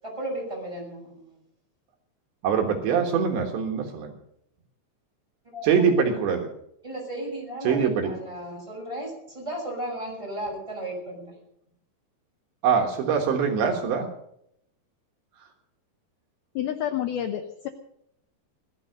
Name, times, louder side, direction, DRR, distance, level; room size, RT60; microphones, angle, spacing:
voice 1, 0.0-1.4 5.4-6.1 6.8-11.3, right 1 dB, 5° right, -2 dB, 6.9 m, -35 dB
voice 2, 2.4-4.1 5.6-6.5 7.7-8.1 12.6-14.1, right 6 dB, 70° right, 3 dB, 3.6 m, -23 dB
voice 3, 16.6-17.7, left 10 dB, 85° left, 7 dB, 2.1 m, -29 dB
18.0 x 12.0 x 6.5 m, 0.75 s
omnidirectional pair, 5.6 m